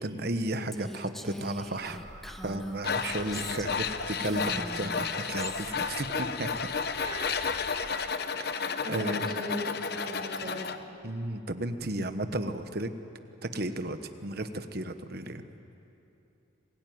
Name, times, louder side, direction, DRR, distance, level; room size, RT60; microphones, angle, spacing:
voice 1, 0.0-2.0 2.4-6.1 6.4-6.5 6.9-7.0 8.5-9.3 11.0-12.9 13.4-15.4, right 1 dB, 50° right, 9 dB, 1.1 m, -34 dB
Female speech woman speaking, 0.7-3.9 4.2-5.7, equal, ahead, 0.7 m, -42 dB
sound 1, 1.5-7.9, equal, 15° left, 5.3 m, -49 dB
Tools, 2.8-10.8, left 5 dB, 50° left, 0.9 m, -32 dB
voice 2, 3.2-3.8 6.1-6.2 7.0-7.6 8.8-10.7, left 1 dB, 25° right, -3 dB, 6.2 m, -38 dB
26.5 x 17.0 x 9.5 m, 2.8 s
head